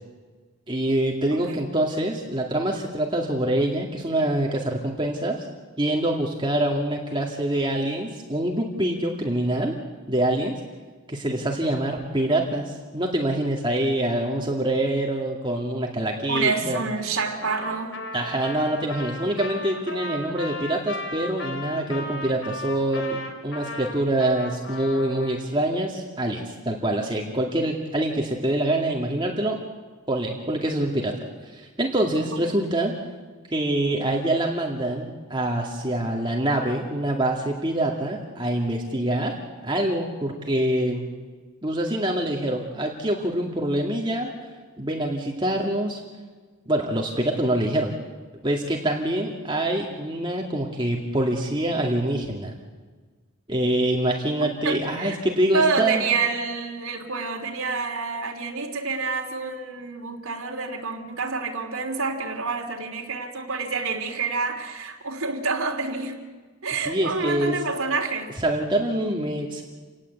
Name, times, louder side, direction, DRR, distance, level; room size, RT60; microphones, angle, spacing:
voice 1, 0.7-5.4 5.8-9.7 10.1-10.6 11.1-16.8 18.1-29.6 30.1-31.1 31.5-32.9 33.5-39.4 39.6-41.1 41.6-44.3 44.8-46.0 46.7-47.9 48.4-52.6 53.5-56.1 66.8-67.6 68.4-69.6, right 1 dB, 20° right, 0 dB, 2.3 m, -25 dB
voice 2, 1.3-1.7 16.3-18.0 32.4-32.6 54.6-55.2 55.5-66.2 66.6-68.3, right 4 dB, 85° right, 1 dB, 3.3 m, -28 dB
Trumpet, 17.4-25.4, left 2 dB, 55° left, 3.5 m, -36 dB
29.0 x 19.0 x 8.4 m, 1.4 s
head